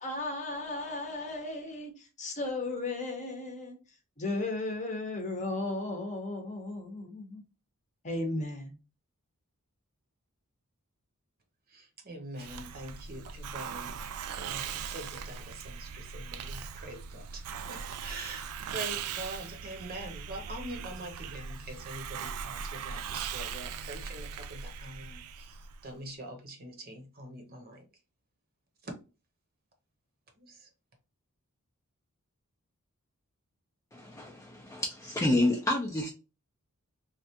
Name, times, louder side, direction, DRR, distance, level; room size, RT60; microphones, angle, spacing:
voice 1, 0.0-3.8 4.2-7.4 8.0-8.8, left 2 dB, 35° left, 0.9 m, -35 dB
voice 2, 11.7-14.1 14.3-17.4 17.7-27.9 28.8-28.9 30.4-30.7, right 1 dB, 45° right, 0.9 m, -44 dB
Hiss, 12.4-25.9, right 7 dB, 75° right, 0.4 m, -40 dB
voice 3, 33.9-36.1, left 1 dB, 15° left, 0.5 m, -29 dB
3.3 x 2.4 x 2.7 m
head